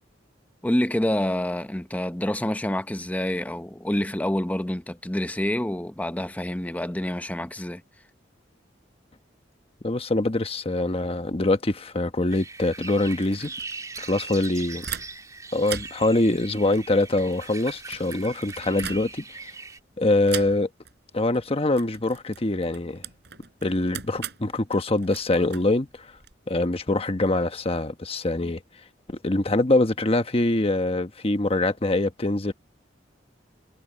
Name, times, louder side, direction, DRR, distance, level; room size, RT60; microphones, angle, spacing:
voice 1, 0.6-7.8, left 1 dB, 10° left, 0.8 m, -27 dB
voice 2, 9.8-13.5 14.0-14.8 15.5-19.2 20.0-20.7 21.1-23.0 23.6-26.1 26.5-28.6 29.1-32.5, left 2 dB, 30° left, 1.1 m, -24 dB
sound 1, 12.3-19.8, right 4 dB, 20° right, 3.5 m, -40 dB
sound 2, 12.9-15.3 15.6-19.4 20.3-20.9 21.2-21.4 21.7-26.3, right 8 dB, 65° right, 6.7 m, -40 dB
head